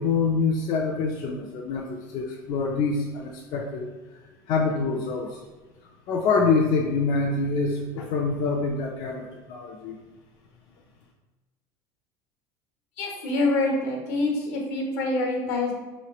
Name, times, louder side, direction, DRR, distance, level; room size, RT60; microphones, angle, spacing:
voice 1, 0.0-3.9 4.5-5.4 6.1-10.0, left 4 dB, 45° left, -1 dB, 0.4 m, -25 dB
voice 2, 13.0-15.7, left 2 dB, 75° left, 0 dB, 1.0 m, -26 dB
3.8 x 3.0 x 2.9 m, 1.2 s
cardioid pair, 165°, 10 cm